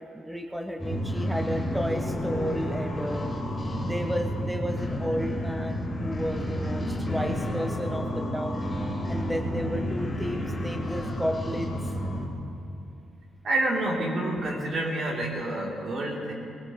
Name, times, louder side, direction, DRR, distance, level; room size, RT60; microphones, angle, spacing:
voice 1, 0.0-3.3 3.8-8.7 9.1-11.8, equal, 5° right, 4 dB, 0.7 m, -32 dB
sound 1, 0.8-12.3, equal, 20° left, 3.8 m, -30 dB
voice 2, 13.4-16.3, right 1 dB, 55° right, -2 dB, 3.1 m, -28 dB
20.0 x 17.5 x 3.1 m, 2.6 s
cardioid pair, 90°, 0 cm